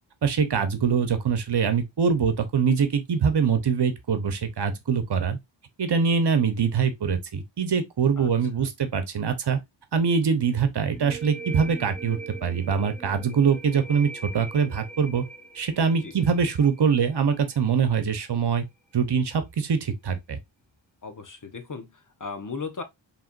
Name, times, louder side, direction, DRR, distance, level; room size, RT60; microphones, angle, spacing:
voice 1, 0.2-5.4 5.8-9.6 9.9-15.2 15.5-18.6 18.9-20.4, right 6 dB, 60° right, 1.0 m, -23 dB
sound 1, 10.9-18.4, right 4 dB, ahead, 1.4 m, -42 dB
voice 2, 21.0-22.8, left 4 dB, 40° left, 1.2 m, -36 dB
4.9 x 3.4 x 2.5 m
wide cardioid pair, 85°, 46 cm